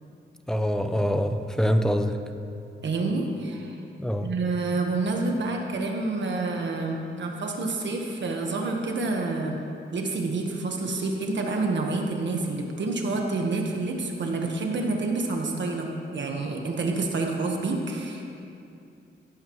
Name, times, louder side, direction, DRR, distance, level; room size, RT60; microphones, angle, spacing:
voice 1, 0.5-2.2 4.0-4.3, equal, 5° left, 7 dB, 0.6 m, -24 dB
voice 2, 2.8-3.7 4.2-9.6 9.9-15.9 16.1-18.2, right 3 dB, 65° right, 1 dB, 1.4 m, -28 dB
16.5 x 12.0 x 3.2 m, 2.6 s
wide cardioid pair, 135°, 20 cm